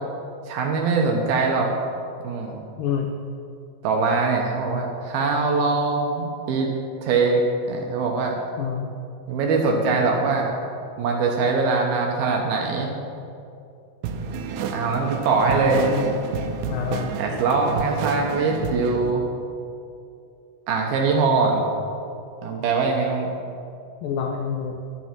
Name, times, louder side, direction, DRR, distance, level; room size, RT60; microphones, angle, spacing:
voice 1, 0.5-1.7 2.2-2.6 3.8-6.7 7.0-7.4 7.7-8.3 9.3-10.5 11.0-12.9 14.7-15.9 17.2-19.2 20.7-21.7 22.4-23.3, right 4 dB, 70° right, 1 dB, 2.6 m, -22 dB
voice 2, 2.8-3.1 8.6-8.9 15.6-16.1 16.7-17.1 24.0-24.8, left 7 dB, 90° left, 3 dB, 1.9 m, -27 dB
sound 1, 14.0-19.1, right 5 dB, 85° right, 2.9 m, -30 dB
11.5 x 10.0 x 6.0 m, 2.5 s
omnidirectional pair, 5.0 m